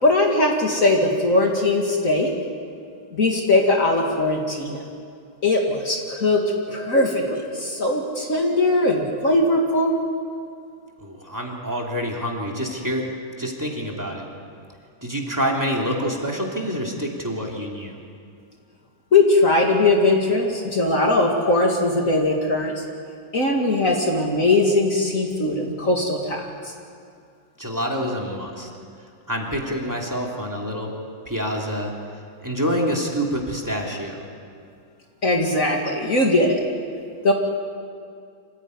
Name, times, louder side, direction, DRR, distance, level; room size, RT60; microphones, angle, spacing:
voice 1, 0.0-2.3 3.1-4.8 5.4-6.4 6.7-10.0 19.1-22.7 23.3-26.7 35.2-36.6 37.2-37.3, left 2 dB, 40° left, 0 dB, 2.6 m, -20 dB
voice 2, 11.0-13.1 13.4-14.2 15.0-18.0 27.6-28.7 29.3-30.9 31.3-31.9 32.4-34.2, equal, 10° right, -1 dB, 2.9 m, -27 dB
26.0 x 15.5 x 9.6 m, 2.3 s
omnidirectional pair, 2.2 m